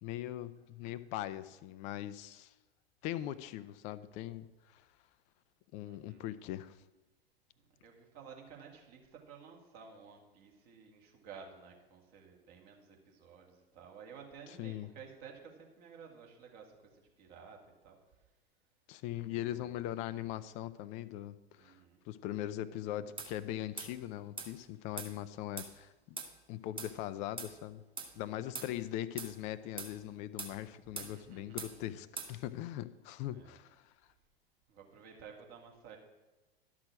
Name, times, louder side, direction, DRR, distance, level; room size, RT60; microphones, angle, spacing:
voice 1, 0.0-2.5 3.0-4.8 5.7-6.8 14.6-14.9 18.9-21.8 22.1-25.9 26.5-27.8 28.2-33.9, left 13 dB, 25° left, 14 dB, 0.4 m, -40 dB
voice 2, 5.8-6.3 7.6-18.0 19.2-19.9 21.6-22.0 28.1-28.2 30.8-31.8 33.2-33.6 34.7-36.0, right 6 dB, 40° right, 1 dB, 2.3 m, -54 dB
sound 1, 23.2-23.3 23.8-23.9 24.4-24.5 25.0-25.1 25.6-25.7 26.2-26.3 26.8-26.9 27.4-27.5 28.0-28.1 28.5-28.7 29.2-29.3 29.8-29.9 30.4-30.6 31.0-31.1 31.6-31.7 32.2-32.3, right 4 dB, 15° right, 1.4 m, -42 dB
12.0 x 6.2 x 6.2 m, 1.1 s
figure-of-eight pair, 95°, 31 cm